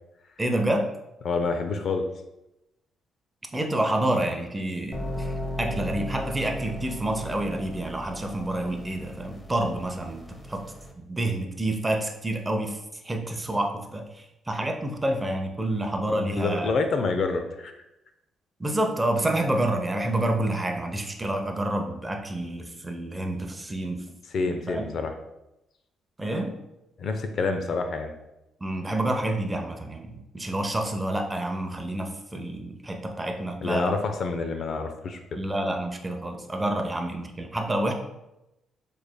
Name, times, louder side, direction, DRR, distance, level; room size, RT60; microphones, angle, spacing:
voice 1, 0.4-0.9 3.5-12.8 13.0-16.8 18.6-24.1 24.7-24.8 26.2-26.6 28.6-33.9 35.3-37.9, right 1 dB, 15° right, 4 dB, 0.6 m, -28 dB
voice 2, 1.2-2.0 16.3-17.7 24.3-25.1 27.0-28.1 33.6-35.4, left 4 dB, 55° left, 6 dB, 0.5 m, -27 dB
sound 1, 4.9-10.9, equal, 20° left, 0.7 m, -36 dB
7.0 x 3.2 x 2.2 m, 0.91 s
cardioid pair, 90°, 0 cm